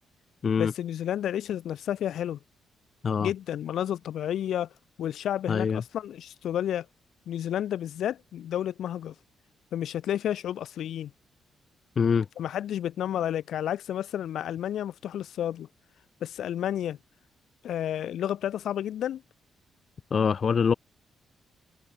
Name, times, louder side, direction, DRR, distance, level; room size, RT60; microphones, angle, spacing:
voice 1, 0.6-2.4 3.2-4.7 5.0-6.9 7.3-9.1 9.7-11.1 12.4-15.7 16.2-17.0 17.6-19.2, left 10 dB, 75° left, 1.1 m, -31 dB
voice 2, 5.5-5.8 12.0-12.3 20.1-20.7, left 6 dB, 45° left, 0.4 m, -24 dB
cardioid pair, 120°, 0 cm